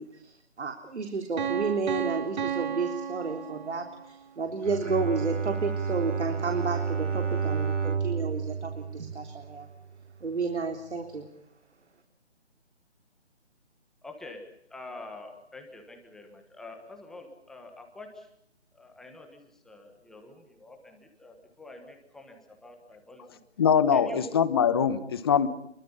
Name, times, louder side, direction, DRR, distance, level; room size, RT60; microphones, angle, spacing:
voice 1, 0.0-9.7 10.2-11.3, right 4 dB, 65° right, 5 dB, 3.5 m, -31 dB
Piano, 1.4-4.1, right 8 dB, 40° right, 2.4 m, -33 dB
Bowed string instrument, 4.5-9.9, right 6 dB, 85° right, 3.2 m, -31 dB
voice 2, 14.0-14.4 14.7-18.3 18.7-23.4 23.9-24.2, left 2 dB, ahead, 3 dB, 1.3 m, -46 dB
voice 3, 23.6-25.5, left 7 dB, 20° left, 13 dB, 1.2 m, -23 dB
29.0 x 23.0 x 5.6 m, 0.74 s
figure-of-eight pair, 165°, 36 cm